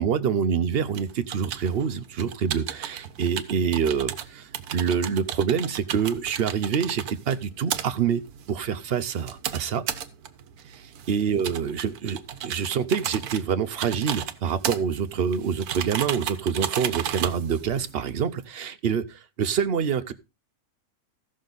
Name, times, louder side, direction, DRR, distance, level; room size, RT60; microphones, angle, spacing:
voice 1, 0.0-8.2 8.5-9.8 10.7-20.1, right 7 dB, 55° right, 0.8 m, -26 dB
sound 1, 0.9-18.5, right 9 dB, 85° right, 1.3 m, -35 dB
14.5 x 6.3 x 3.9 m
omnidirectional pair, 1.6 m